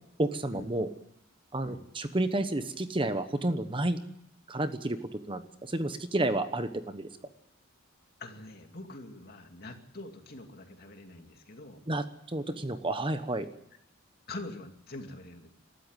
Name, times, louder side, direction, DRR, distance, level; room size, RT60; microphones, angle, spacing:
voice 1, 0.2-0.9 1.5-4.0 4.5-7.1 11.9-13.5, right 1 dB, 25° right, 10 dB, 1.1 m, -31 dB
voice 2, 8.2-11.8 14.3-15.5, left 2 dB, 50° left, 4 dB, 2.6 m, -44 dB
23.0 x 13.5 x 9.1 m, 0.81 s
head